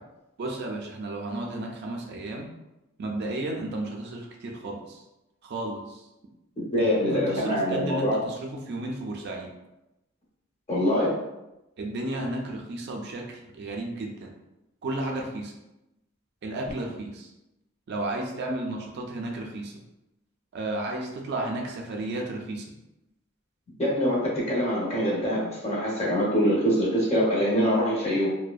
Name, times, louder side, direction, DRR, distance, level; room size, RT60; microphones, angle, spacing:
voice 1, 0.4-2.5 3.0-5.0 5.4-6.0 6.8-9.5 11.8-14.3 14.8-15.5 16.4-17.3 17.9-19.7 20.5-22.6, right 2 dB, 55° right, 0 dB, 0.4 m, -33 dB
voice 2, 6.6-8.1 10.7-11.2 23.8-28.3, equal, 30° left, -5 dB, 0.7 m, -24 dB
2.6 x 2.1 x 2.3 m, 0.94 s
head